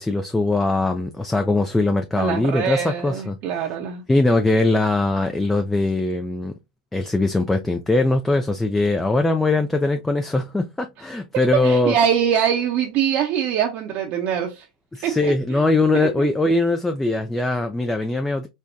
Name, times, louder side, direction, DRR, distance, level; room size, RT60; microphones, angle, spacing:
voice 1, 0.0-3.6 4.1-6.5 6.9-12.0 14.9-18.5, left 2 dB, 5° left, 0.4 m, -21 dB
voice 2, 2.2-4.0 11.6-14.7 15.0-15.6 15.9-16.3, right 8 dB, 45° right, 0.7 m, -23 dB
4.3 x 2.2 x 2.5 m
hypercardioid pair, 100°, 4 cm